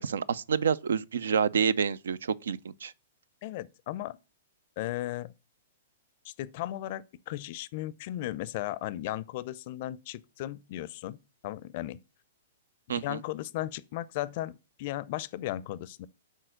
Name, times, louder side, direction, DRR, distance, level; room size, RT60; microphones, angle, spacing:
voice 1, 0.0-2.9 12.9-13.2, right 6 dB, 70° right, 0.4 m, -28 dB
voice 2, 3.4-4.2 4.8-5.3 6.2-11.2 11.4-12.0 13.0-16.1, left 15 dB, 50° left, 0.5 m, -36 dB
6.4 x 4.1 x 6.3 m
figure-of-eight pair, 110°, 0 cm